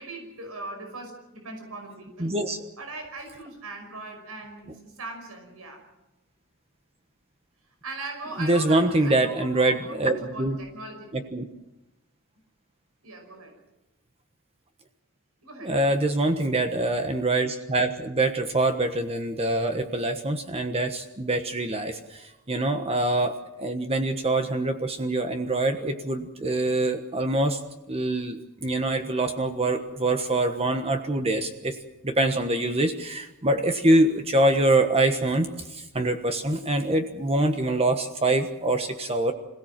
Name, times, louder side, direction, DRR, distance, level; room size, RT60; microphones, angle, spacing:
voice 1, 0.0-2.3 2.8-5.8 7.8-11.3 13.0-13.5 15.4-16.0 24.4-24.6, right 2 dB, 85° right, 4 dB, 5.7 m, -40 dB
voice 2, 2.2-2.6 8.4-10.6 11.1-11.4 15.6-27.6 27.9-31.8 32.0-39.3, right 2 dB, 30° right, 6 dB, 1.3 m, -24 dB
26.5 x 17.0 x 7.5 m, 0.96 s
head